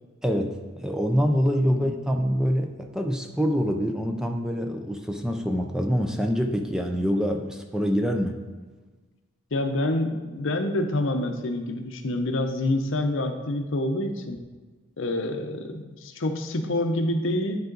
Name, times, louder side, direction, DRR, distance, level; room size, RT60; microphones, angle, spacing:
voice 1, 0.2-8.4, equal, 5° right, 4 dB, 0.5 m, -25 dB
voice 2, 1.7-2.0 9.5-14.4 15.0-17.6, left 1 dB, 65° left, 6 dB, 0.7 m, -27 dB
11.0 x 4.8 x 3.9 m, 1.3 s
head